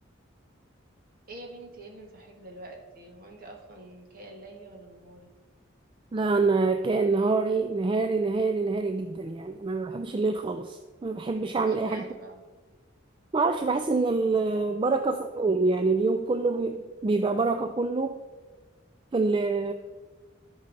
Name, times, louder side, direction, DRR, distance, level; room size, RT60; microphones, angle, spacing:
voice 1, 1.3-5.3 11.7-12.4, right 2 dB, 45° right, 1 dB, 1.6 m, -46 dB
voice 2, 6.1-12.1 13.3-18.2 19.1-19.7, right 3 dB, 25° right, 7 dB, 0.3 m, -26 dB
13.0 x 5.5 x 3.9 m, 1.3 s
head